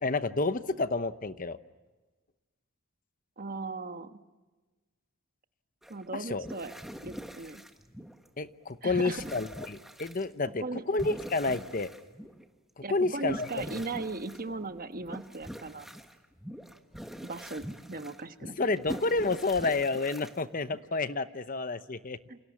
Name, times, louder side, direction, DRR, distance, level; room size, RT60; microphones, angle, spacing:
voice 1, 0.0-1.6 6.1-6.5 8.4-11.9 12.9-13.5 18.6-22.2, left 3 dB, 40° left, 12 dB, 0.8 m, -30 dB
voice 2, 3.4-4.2 5.9-6.7 7.0-7.6 8.8-9.2 10.6-10.8 12.8-15.9 17.2-18.8 22.3-22.4, right 3 dB, 40° right, 8 dB, 1.3 m, -38 dB
sound 1, 5.8-6.0 6.4-8.4 8.6-10.2 11.0-12.5 12.9-20.8, equal, ahead, 1.5 m, -44 dB
28.5 x 28.5 x 7.3 m, 1.2 s
head